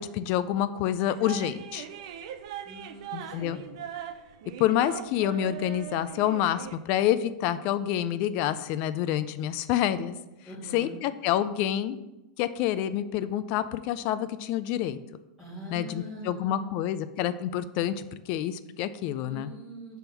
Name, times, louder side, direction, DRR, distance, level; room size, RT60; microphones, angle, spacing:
voice 1, 0.0-1.9 3.1-3.6 4.6-10.2 10.7-12.0 12.4-15.0 15.7-19.5, left 11 dB, 40° left, 13 dB, 0.3 m, -28 dB
sound 1, 1.1-6.8, right 10 dB, 55° right, 0.5 m, -40 dB
voice 2, 2.6-3.8 10.4-10.9 15.4-16.8 19.3-20.0, equal, ahead, -9 dB, 2.5 m, -43 dB
6.1 x 3.5 x 5.7 m, 0.99 s
supercardioid pair, 160°, 4 cm